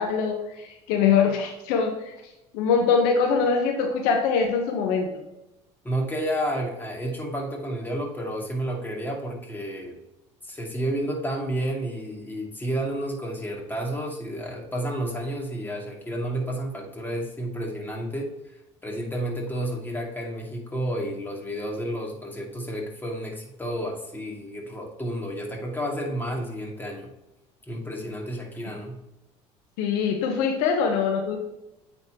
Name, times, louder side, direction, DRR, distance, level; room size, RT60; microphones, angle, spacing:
voice 1, 0.0-2.1 2.5-5.1 29.8-31.4, left 6 dB, 70° left, 3 dB, 1.1 m, -23 dB
voice 2, 5.8-10.0 10.4-18.3 18.8-27.1 27.7-29.0, right 1 dB, 10° left, -1 dB, 2.4 m, -31 dB
8.9 x 4.2 x 2.9 m, 0.93 s
hypercardioid pair, 70°, 15 cm